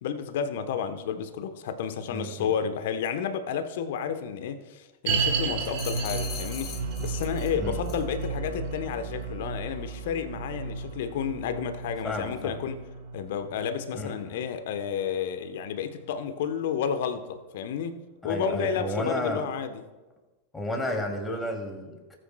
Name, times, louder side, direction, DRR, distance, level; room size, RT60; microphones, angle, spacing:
voice 1, 0.0-12.8 13.1-19.8, left 7 dB, 60° left, 9 dB, 1.0 m, -31 dB
voice 2, 2.1-2.5 7.6-7.7 12.0-12.6 13.9-14.4 18.2-19.5 20.5-22.2, left 1 dB, 10° left, 1 dB, 2.7 m, -32 dB
sound 1, 5.1-16.3 16.6-16.7 17.3-17.4, right 5 dB, 60° right, 1.5 m, -34 dB
sound 2, 5.6-7.5 7.8-8.1, left 7 dB, 40° left, 1.7 m, -40 dB
18.0 x 9.1 x 2.3 m, 1.2 s
figure-of-eight pair, 90°, 0 cm